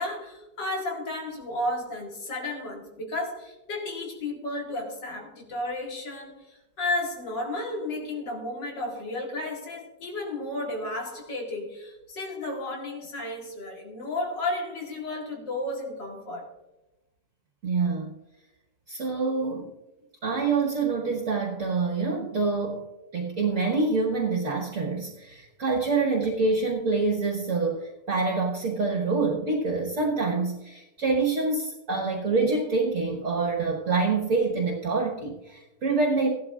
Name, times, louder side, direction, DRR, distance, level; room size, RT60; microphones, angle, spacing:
voice 1, 0.0-16.5, left 2 dB, 85° left, -1 dB, 2.8 m, -33 dB
voice 2, 17.6-18.1 18.9-19.7 20.2-36.3, right 3 dB, 50° right, -1 dB, 1.6 m, -26 dB
16.0 x 12.0 x 2.4 m, 1.0 s
omnidirectional pair, 1.9 m